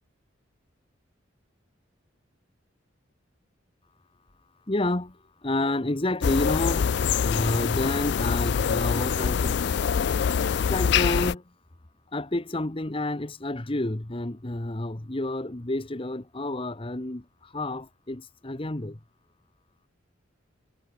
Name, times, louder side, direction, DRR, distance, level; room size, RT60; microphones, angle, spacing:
voice 1, 4.7-9.7 10.5-11.4 12.1-19.0, left 1 dB, 30° left, 1.1 m, -30 dB
sound 1, 6.2-11.4, left 7 dB, 60° left, 0.4 m, -25 dB
head